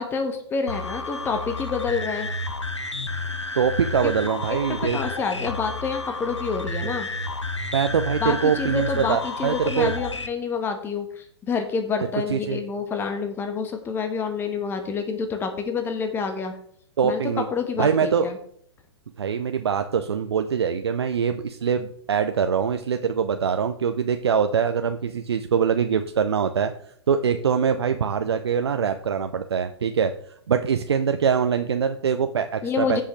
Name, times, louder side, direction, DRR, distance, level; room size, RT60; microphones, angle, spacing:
voice 1, 0.0-2.3 4.0-4.1 4.5-7.1 8.2-16.5 17.0-17.2 17.5-18.4 32.6-33.0, left 5 dB, 15° left, 6 dB, 1.1 m, -28 dB
sound 1, 0.7-10.3, left 3 dB, 85° left, 0.9 m, -31 dB
voice 2, 3.5-5.0 7.7-9.9 12.3-12.6 17.0-17.5 17.8-18.3 19.2-26.7 27.1-30.1 30.5-33.0, right 7 dB, 65° right, 8 dB, 0.6 m, -23 dB
15.5 x 5.6 x 3.2 m, 0.65 s
figure-of-eight pair, 110°, 15 cm